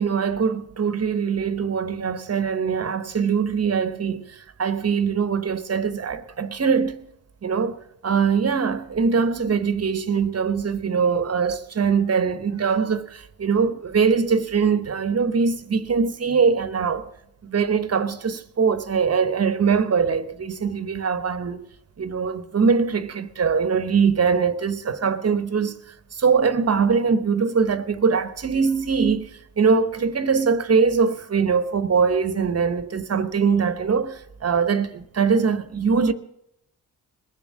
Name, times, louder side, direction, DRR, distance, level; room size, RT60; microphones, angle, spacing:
voice 1, 0.0-7.1 7.4-7.8 8.0-17.1 17.4-21.7 22.0-36.1, right 5 dB, 40° right, 1.0 m, -22 dB
21.0 x 7.3 x 7.4 m
cardioid pair, 85°, 39 cm